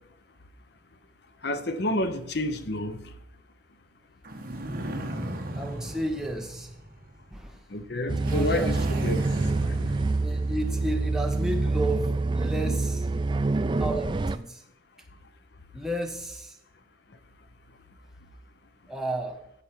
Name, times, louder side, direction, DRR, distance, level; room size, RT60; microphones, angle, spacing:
voice 1, 1.4-3.1 7.7-8.8 9.0-9.2 9.6-10.0, left 1 dB, 55° left, 0.8 m, -29 dB
sound 1, 4.2-7.3 8.2-10.9, right 1 dB, 50° right, 1.3 m, -36 dB
voice 2, 5.5-6.7 7.3-7.6 8.2-8.8 10.2-13.1 13.8-14.6 15.7-16.6 18.9-19.4, right 1 dB, 5° right, 1.0 m, -33 dB
sound 2, 8.1-14.4, right 3 dB, 25° right, 0.3 m, -26 dB
15.0 x 5.4 x 4.5 m
head